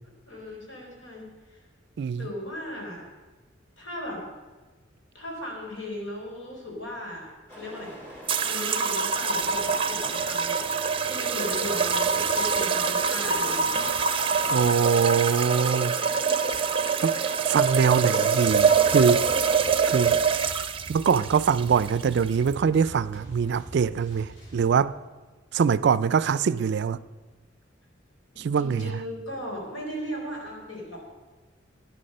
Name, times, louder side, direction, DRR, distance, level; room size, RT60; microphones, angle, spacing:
voice 1, 0.3-1.6 2.2-3.0 3.8-4.2 5.1-10.6 11.0-13.8 28.6-31.0, left 1 dB, 85° left, 4.2 m, -37 dB
sound 1, 7.5-19.7, equal, 10° left, 3.3 m, -43 dB
sound 2, 8.3-22.5, right 5 dB, 30° right, 0.7 m, -25 dB
voice 2, 14.2-16.0 17.0-19.2 19.9-20.2 20.9-24.9 25.5-27.0 28.4-28.9, right 6 dB, 65° right, 0.4 m, -23 dB
sound 3, 18.3-25.0, right 1 dB, 65° left, 5.6 m, -45 dB
12.5 x 10.0 x 6.5 m
head